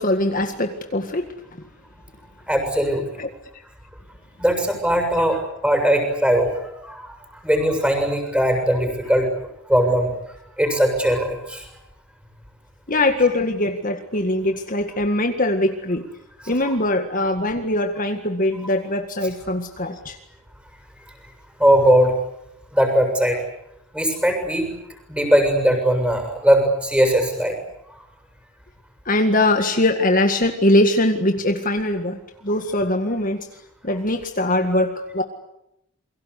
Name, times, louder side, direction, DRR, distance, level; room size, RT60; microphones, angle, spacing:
voice 1, 0.0-1.3 3.2-3.3 12.9-16.0 16.5-20.2 29.1-33.5 33.8-35.2, left 1 dB, 40° left, 5 dB, 1.9 m, -21 dB
voice 2, 2.5-3.0 4.4-7.0 7.4-9.3 9.7-10.1 10.6-11.6 21.6-22.1 22.7-23.4 23.9-24.7 25.1-27.6, equal, 5° right, 5 dB, 7.3 m, -19 dB
29.0 x 23.5 x 8.4 m, 0.81 s
head